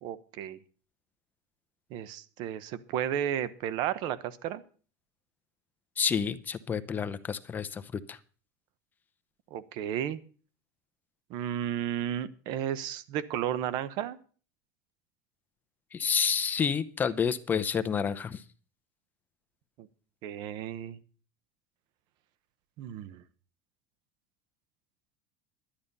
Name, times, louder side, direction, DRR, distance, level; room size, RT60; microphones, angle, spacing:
voice 1, 0.0-0.6 1.9-4.6 9.5-10.2 11.3-14.2 19.8-19.9 20.2-21.0 22.8-23.2, right 10 dB, 55° right, 16 dB, 1.0 m, -33 dB
voice 2, 6.0-8.2 15.9-18.4, left 7 dB, 20° left, 12 dB, 0.7 m, -29 dB
11.5 x 10.5 x 5.5 m, 0.41 s
supercardioid pair, 150°, 9 cm